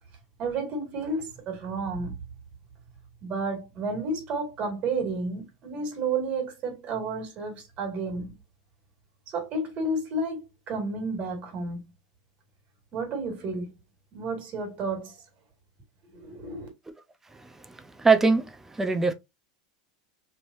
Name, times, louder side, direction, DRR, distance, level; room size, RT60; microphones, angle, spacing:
voice 1, 0.4-2.2 3.2-8.3 9.3-11.8 12.9-13.7 14.1-15.2 16.1-16.7, right 3 dB, 40° right, 2.0 m, -31 dB
voice 2, 17.3-19.1, right 4 dB, 10° right, 0.6 m, -24 dB
3.2 x 2.8 x 2.6 m
supercardioid pair, 120°, 3 cm